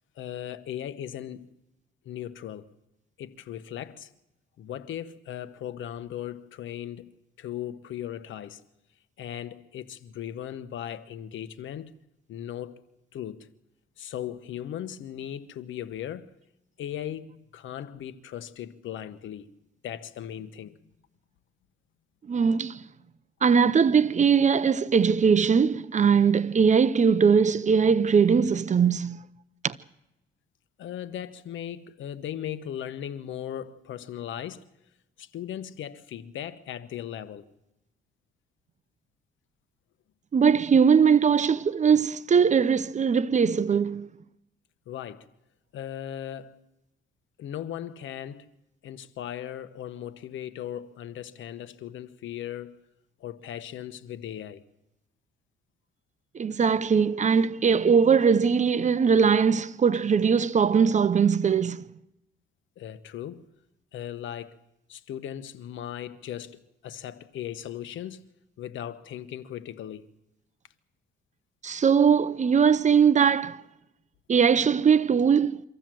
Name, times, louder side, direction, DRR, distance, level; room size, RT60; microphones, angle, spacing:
voice 1, 0.2-1.5 2.0-2.7 3.2-4.1 4.6-7.1 7.4-8.6 9.2-11.9 12.3-12.8 13.1-13.5 14.0-16.3 16.8-19.5 19.8-20.8 30.8-34.7 35.2-37.5 44.9-45.3 45.7-46.6 47.4-48.5 48.8-52.8 53.2-54.6 62.8-63.4 63.9-64.6 64.9-68.3 68.6-70.0, left 10 dB, 75° left, 1.2 m, -37 dB
voice 2, 22.3-22.9 23.4-29.2 29.6-29.8 40.3-44.1 56.3-61.8 71.6-73.6 74.3-75.6, right 6 dB, 35° right, 0.8 m, -21 dB
25.0 x 14.5 x 7.7 m
cardioid pair, 90°, 20 cm